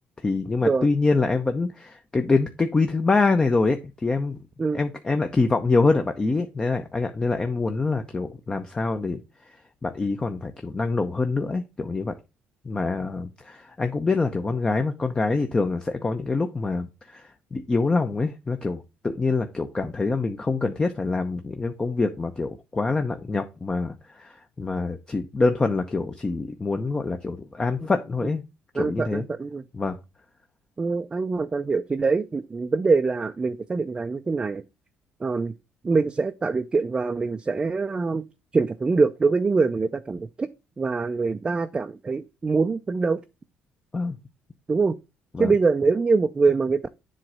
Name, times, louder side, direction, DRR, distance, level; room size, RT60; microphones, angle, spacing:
voice 1, 0.2-4.4 4.7-12.1 12.6-28.4 28.7-29.2 29.7-30.0 43.9-44.2 45.3-45.5, left 3 dB, 20° left, 0.7 m, -25 dB
voice 2, 28.8-29.6 30.8-34.6 35.2-35.5 35.8-38.2 38.5-40.5 40.8-43.2 44.7-45.0 45.4-46.9, right 4 dB, 25° right, 0.5 m, -24 dB
7.6 x 3.2 x 6.2 m
cardioid pair, 100°, 4 cm